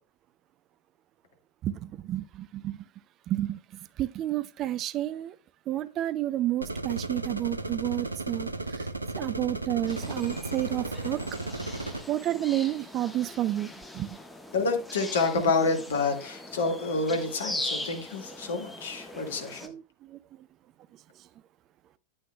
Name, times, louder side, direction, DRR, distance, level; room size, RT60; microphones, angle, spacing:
voice 1, 1.6-2.9 3.3-5.4 5.7-8.9 9.1-11.2 12.1-14.2 19.6-20.5, right 13 dB, 35° right, 0.4 m, -31 dB
sound 1, 6.6-12.0, right 2 dB, 85° right, 0.7 m, -34 dB
sound 2, 9.9-19.7, left 1 dB, 5° left, 1.2 m, -40 dB
voice 2, 14.5-19.7, left 3 dB, 65° left, 1.7 m, -28 dB
10.0 x 8.7 x 2.2 m
figure-of-eight pair, 90°, 0 cm